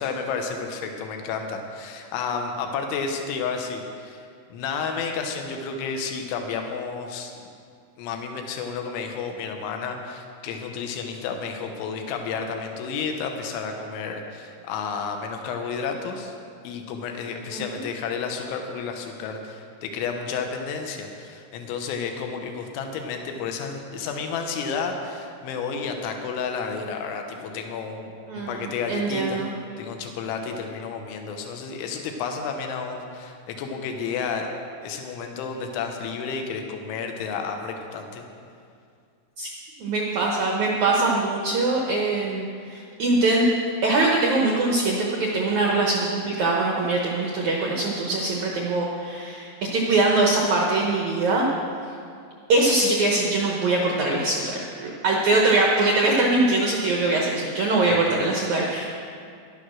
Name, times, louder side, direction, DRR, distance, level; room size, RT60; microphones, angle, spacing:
voice 1, 0.0-7.3 8.0-16.4 16.7-29.5 29.8-34.5 34.8-38.2 57.9-58.1, left 5 dB, 90° left, 4 dB, 3.4 m, -31 dB
voice 2, 28.3-28.6 28.9-29.5 39.4-39.5 39.8-43.5 43.8-51.5 52.5-58.9, right 2 dB, 85° right, -1 dB, 1.6 m, -22 dB
12.0 x 11.0 x 6.3 m, 2.3 s
omnidirectional pair, 5.3 m